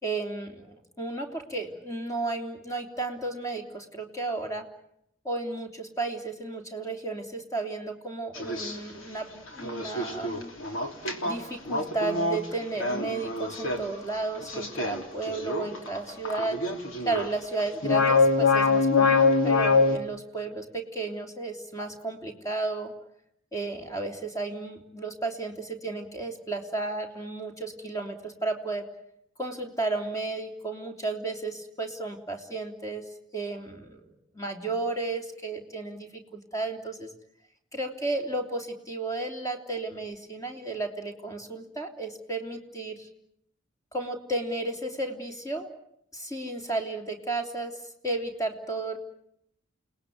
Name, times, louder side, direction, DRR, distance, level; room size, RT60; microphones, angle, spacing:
voice 1, 0.0-4.7 5.2-9.3 9.5-10.5 11.2-16.7 17.0-22.9 23.5-28.8 29.4-33.0 33.3-37.1 37.7-43.1 43.9-45.7 46.1-47.7 48.0-49.0, right 3 dB, 15° left, 3 dB, 3.4 m, -33 dB
sound 1, 8.3-8.8 9.5-17.3 17.6-20.0, left 4 dB, 75° left, 3.2 m, -25 dB
29.5 x 19.0 x 9.4 m, 0.78 s
head